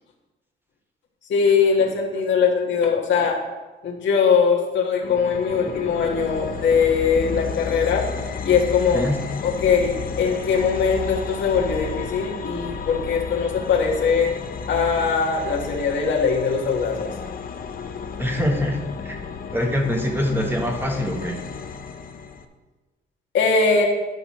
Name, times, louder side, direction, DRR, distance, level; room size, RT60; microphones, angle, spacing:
voice 1, 1.3-3.4 3.8-8.1 8.4-9.0 9.4-14.3 14.7-17.1 23.3-23.9, left 5 dB, 70° left, -1 dB, 1.7 m, -21 dB
sound 1, 5.0-22.4, left 5 dB, 45° left, 0.7 m, -33 dB
voice 2, 18.2-19.2 19.5-21.4, left 1 dB, 10° right, 2 dB, 1.3 m, -24 dB
10.5 x 5.5 x 4.2 m, 1.2 s
cardioid pair, 90°, 20 cm